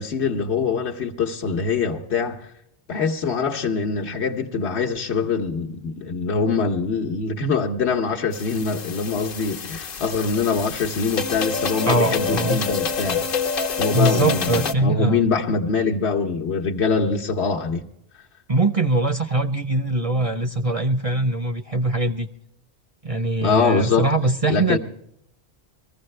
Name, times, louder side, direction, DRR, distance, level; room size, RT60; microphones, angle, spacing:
voice 1, 0.0-2.4 2.9-13.2 13.8-17.8 23.4-24.1 24.5-24.8, left 4 dB, 75° left, 1.2 m, -23 dB
sound 1, 8.3-14.7, left 5 dB, 55° left, 0.9 m, -27 dB
voice 2, 11.9-12.7 13.9-15.3 18.5-22.3 23.0-24.8, right 2 dB, 40° right, 0.6 m, -22 dB
21.5 x 15.0 x 3.2 m
omnidirectional pair, 1.1 m